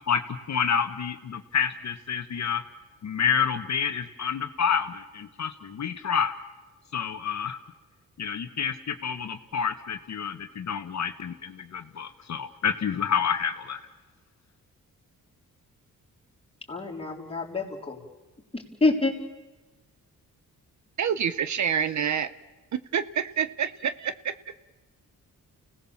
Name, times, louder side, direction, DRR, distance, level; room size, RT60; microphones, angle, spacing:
voice 1, 0.5-2.6 3.0-6.3 6.9-7.6 8.2-13.8, left 7 dB, 55° left, 7 dB, 1.2 m, -28 dB
voice 2, 16.7-18.0 18.5-19.1, left 2 dB, 15° left, -1 dB, 3.9 m, -27 dB
voice 3, 21.0-22.3 22.7-24.4, right 8 dB, 60° right, 14 dB, 0.9 m, -27 dB
29.5 x 18.0 x 7.2 m, 1.2 s
cardioid pair, 115°, 33 cm